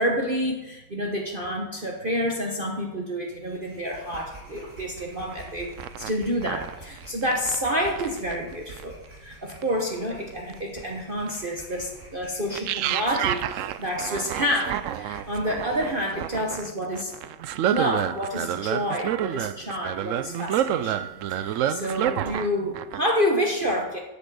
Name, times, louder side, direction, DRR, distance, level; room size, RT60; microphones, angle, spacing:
voice 1, 0.0-9.0 9.2-17.1 17.5-21.1 21.4-24.0, equal, 35° right, 1 dB, 1.2 m, -28 dB
sound 1, 3.3-16.7, right 2 dB, 55° right, 3.9 m, -47 dB
sound 2, 5.3-5.5 5.8-7.6 8.0-8.4 8.8-8.9 9.5-9.6 10.3-10.5 11.3-11.4 12.5-22.5 22.8-23.1, right 11 dB, 80° right, 0.7 m, -29 dB
8.5 x 8.2 x 7.6 m, 1.0 s
omnidirectional pair, 1.9 m